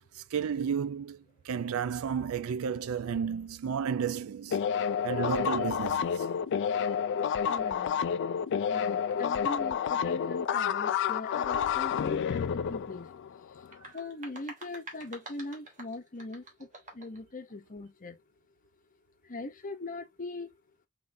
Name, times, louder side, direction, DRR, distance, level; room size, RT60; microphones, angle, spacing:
voice 1, 0.1-4.6 5.0-6.3, right 7 dB, 65° right, 0.4 m, -32 dB
sound 1, 4.5-13.7, left 7 dB, 55° left, 0.3 m, -29 dB
voice 2, 7.5-8.0 8.7-13.1 13.9-16.4 16.9-18.2 19.3-20.5, left 2 dB, 35° left, 0.7 m, -40 dB
sound 2, 13.6-17.2, right 2 dB, 35° right, 1.2 m, -48 dB
3.8 x 3.8 x 2.6 m
head